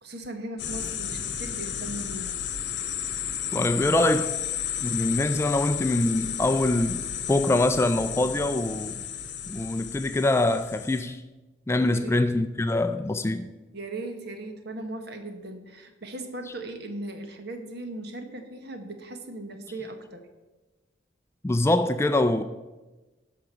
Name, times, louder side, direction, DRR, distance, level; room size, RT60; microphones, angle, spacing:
voice 1, 0.0-2.4 11.8-12.3 13.7-20.3, right 1 dB, 55° right, 1.3 m, -38 dB
sound 1, 0.6-11.0, left 9 dB, 60° left, 1.0 m, -33 dB
voice 2, 3.5-4.3 4.8-9.0 9.5-11.2 11.7-13.5 21.4-22.4, left 2 dB, 15° left, 0.3 m, -24 dB
12.0 x 5.0 x 6.9 m
head